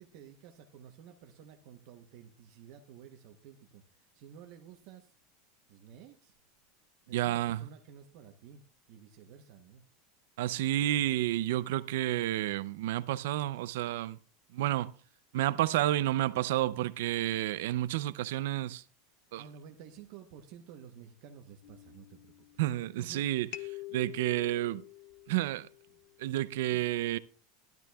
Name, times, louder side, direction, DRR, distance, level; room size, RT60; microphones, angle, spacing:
voice 1, 0.0-5.1 5.7-6.3 7.1-8.6 8.9-9.8 19.2-23.4 26.7-27.0, right 8 dB, 45° right, 0.9 m, -52 dB
voice 2, 7.1-7.7 10.4-14.2 14.5-14.9 15.3-18.8 19.3-19.4 22.6-23.5 23.9-24.8 25.3-25.7 26.2-27.2, right 14 dB, 70° right, 0.5 m, -30 dB
sound 1, 21.6-23.0 23.5-26.2, left 17 dB, 40° left, 0.5 m, -47 dB
14.0 x 12.0 x 2.3 m
supercardioid pair, 180°, 0 cm